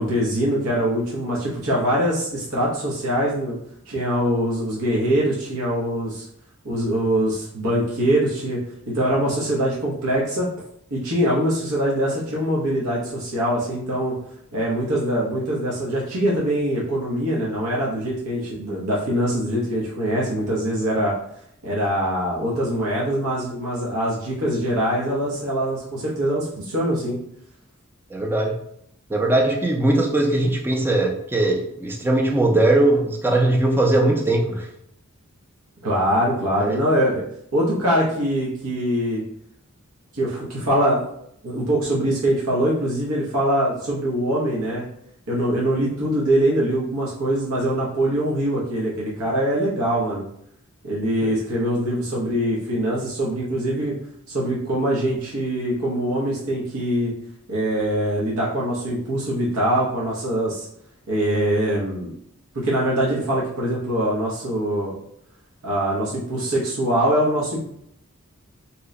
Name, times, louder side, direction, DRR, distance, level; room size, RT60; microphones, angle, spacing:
voice 1, 0.0-3.6 3.9-6.3 6.6-8.6 8.9-10.5 10.9-14.1 14.5-21.1 21.6-27.2 35.8-37.2 37.5-39.2 40.1-41.1 41.4-44.8 45.3-50.2 50.8-53.9 54.3-57.1 57.5-60.7 61.1-62.1 62.5-64.9 65.6-67.6, right 1 dB, 85° right, -5 dB, 0.8 m, -23 dB
voice 2, 28.1-28.6 29.1-34.7 36.6-36.8 51.2-51.3, right 2 dB, 10° right, 1 dB, 0.4 m, -20 dB
2.9 x 2.1 x 3.6 m, 0.72 s
head